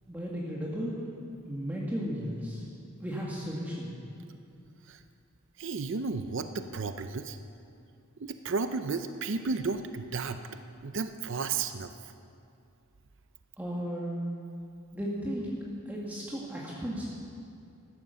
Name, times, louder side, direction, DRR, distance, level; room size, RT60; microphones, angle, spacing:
voice 1, 0.1-1.0 1.5-2.7 3.0-4.0 13.6-14.1 14.9-15.5 15.9-17.1, equal, 10° right, -5 dB, 1.8 m, -35 dB
voice 2, 5.6-7.4 8.2-10.4 10.8-11.9, right 4 dB, 65° right, 9 dB, 0.6 m, -33 dB
14.5 x 13.0 x 6.9 m, 2.5 s
head